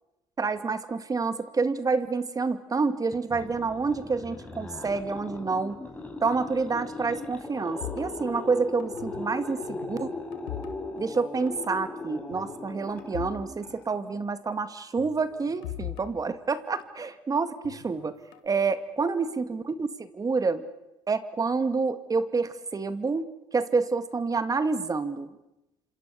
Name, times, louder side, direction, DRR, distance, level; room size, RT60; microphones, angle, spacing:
voice 1, 0.4-5.8 6.2-10.1 11.0-18.2 18.4-20.6 21.1-23.2 23.5-25.3, right 4 dB, 30° right, 11 dB, 2.1 m, -28 dB
sound 1, 3.1-14.2, left 2 dB, 15° left, 7.3 m, -39 dB
sound 2, 7.8-9.4 9.6-11.2 11.5-11.7 12.3-13.4 13.7-13.8 15.0-17.0 17.6-18.5, left 12 dB, 85° left, 2.2 m, -41 dB
28.5 x 26.5 x 7.0 m, 0.96 s
supercardioid pair, 75°, 13 cm